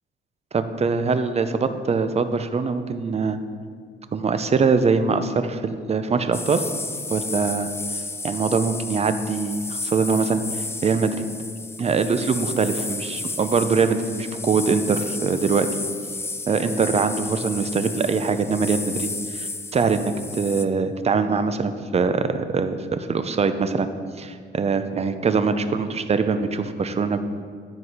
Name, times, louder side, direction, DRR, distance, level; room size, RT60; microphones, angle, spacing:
voice 1, 0.5-3.4 4.1-6.6 7.1-7.7 8.2-11.3 11.8-15.7 16.5-23.9 24.2-27.4, right 5 dB, 30° right, 10 dB, 0.6 m, -23 dB
sound 1, 6.3-20.6, left 3 dB, 15° left, 0.4 m, -32 dB
9.7 x 4.8 x 5.5 m, 2.1 s
cardioid pair, 90°, 20 cm